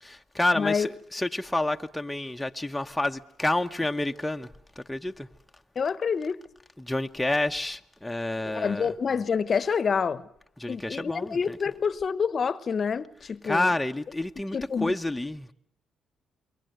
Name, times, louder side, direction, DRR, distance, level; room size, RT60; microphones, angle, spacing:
voice 1, 0.0-4.5 4.8-5.3 6.8-8.9 10.6-11.6 13.4-15.5, left 2 dB, 5° left, 1.0 m, -29 dB
voice 2, 0.5-0.9 5.8-6.4 8.5-10.2 10.7-13.7 14.5-14.9, left 6 dB, 45° left, 1.0 m, -27 dB
28.0 x 22.5 x 7.9 m
cardioid pair, 90°, 0 cm